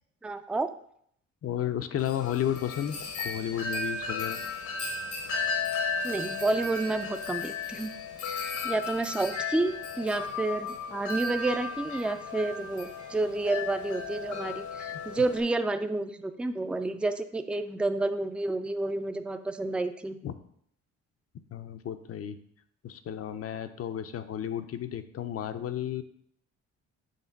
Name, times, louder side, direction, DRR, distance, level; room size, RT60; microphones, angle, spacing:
voice 1, 0.2-0.7 6.0-7.9 8.4-20.2, right 2 dB, 5° right, 9 dB, 0.4 m, -30 dB
voice 2, 1.4-4.4 20.2-20.3 21.5-22.4 22.8-26.0, left 10 dB, 50° left, 10 dB, 0.6 m, -33 dB
Wind chime, 2.0-15.4, left 4 dB, 75° left, 1.3 m, -35 dB
6.6 x 3.2 x 5.8 m, 0.67 s
cardioid pair, 90°, 30 cm